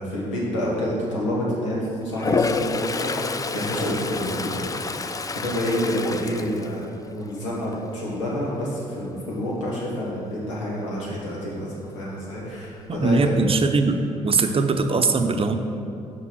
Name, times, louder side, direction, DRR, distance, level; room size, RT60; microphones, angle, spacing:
voice 1, 0.0-6.8 7.1-13.5 14.3-14.6, equal, 90° left, -6 dB, 1.5 m, -28 dB
Toilet flush, 2.1-7.3 7.7-8.1 12.6-12.7 12.9-13.7, left 4 dB, 20° left, 0.4 m, -28 dB
voice 2, 13.0-15.5, right 3 dB, 35° right, 7 dB, 0.7 m, -21 dB
5.8 x 5.4 x 6.2 m, 2.7 s
hypercardioid pair, 45°, 16 cm